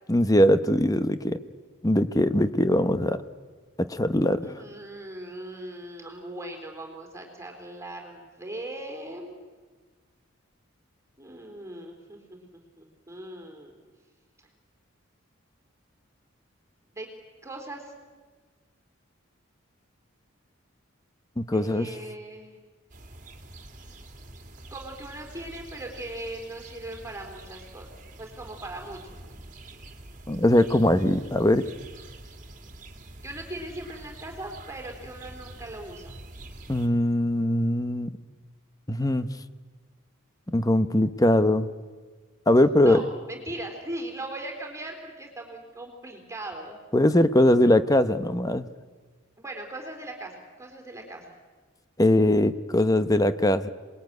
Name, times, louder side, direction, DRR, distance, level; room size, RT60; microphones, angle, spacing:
voice 1, 0.1-1.4 1.8-3.2 3.8-4.5 21.4-21.9 30.3-31.6 36.7-38.2 38.9-39.3 40.5-41.7 42.5-43.0 46.9-48.7 52.0-53.7, left 1 dB, 15° left, 11 dB, 0.9 m, -21 dB
voice 2, 4.4-9.3 11.2-12.4 12.8-13.7 16.9-17.1 17.4-17.9 21.5-22.6 24.7-27.9 28.2-29.0 33.2-36.2 42.8-43.0 43.3-46.8 49.4-51.3, right 1 dB, 15° right, 2 dB, 3.9 m, -39 dB
sound 1, 22.9-36.9, right 2 dB, 40° right, 2.4 m, -46 dB
27.0 x 21.0 x 9.4 m, 1.4 s
head